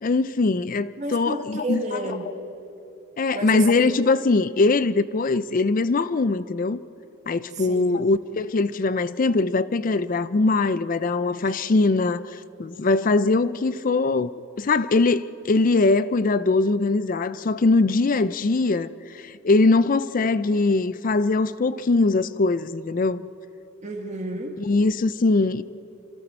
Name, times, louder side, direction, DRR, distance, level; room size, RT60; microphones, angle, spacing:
voice 1, 0.0-1.8 3.2-6.8 7.3-14.3 14.6-18.9 19.2-23.3 24.6-25.6, left 3 dB, 40° left, 0.4 m, -21 dB
voice 2, 1.0-2.3 3.3-4.0 7.5-8.1 11.4-11.5 23.8-24.6, right 1 dB, 35° right, 1.9 m, -31 dB
28.5 x 26.0 x 4.4 m
head